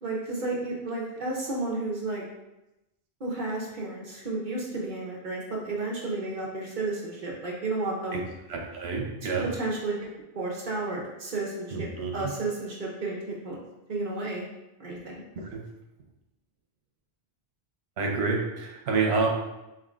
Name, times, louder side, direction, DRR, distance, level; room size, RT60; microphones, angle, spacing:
voice 1, 0.0-2.2 3.2-8.3 9.2-10.0 10.3-13.6 13.9-14.4 14.8-15.2, right 2 dB, 50° right, -3 dB, 0.8 m, -32 dB
voice 2, 8.5-9.5 11.7-12.1 15.5-15.6 18.0-19.3, right 4 dB, 80° right, 1 dB, 1.0 m, -28 dB
4.3 x 3.6 x 2.4 m, 0.95 s
omnidirectional pair, 1.1 m